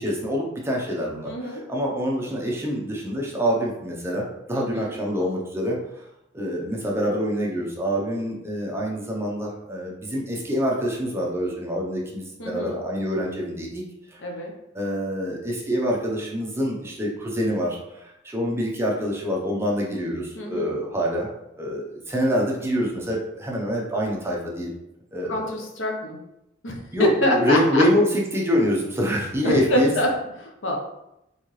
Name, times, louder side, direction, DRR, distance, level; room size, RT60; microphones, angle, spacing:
voice 1, 0.0-6.0 6.3-13.8 14.1-14.2 14.7-21.3 21.6-24.7 25.1-25.5 26.9-29.9, equal, 15° right, -2 dB, 0.7 m, -26 dB
voice 2, 1.3-1.6 4.5-4.9 12.4-12.8 14.2-14.5 20.4-20.8 25.3-26.2 26.6-27.8 29.4-30.1 30.4-30.8, left 1 dB, 85° left, 1 dB, 0.9 m, -25 dB
4.1 x 3.7 x 3.2 m, 0.86 s
head